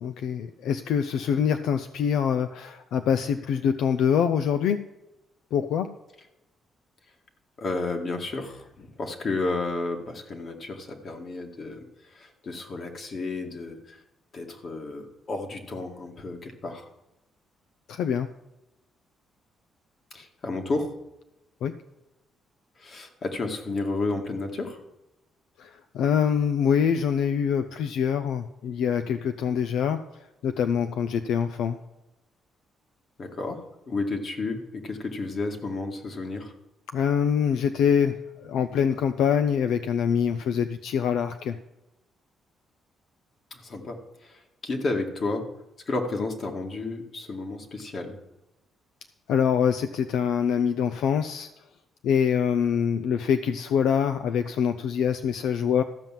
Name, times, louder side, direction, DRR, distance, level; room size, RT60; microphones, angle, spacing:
voice 1, 0.0-4.8 5.5-5.9 17.9-18.3 21.6-21.7 25.6-30.0 30.4-31.8 36.9-41.6 49.3-51.5 52.0-55.8, left 7 dB, 80° left, 9 dB, 0.5 m, -24 dB
voice 2, 7.6-14.0 14.3-16.9 20.1-20.9 22.8-24.8 33.2-36.5 43.5-45.5 45.9-48.2, left 3 dB, 50° left, 3 dB, 2.0 m, -32 dB
14.0 x 5.5 x 7.4 m, 0.94 s
cardioid pair, 90°, 0 cm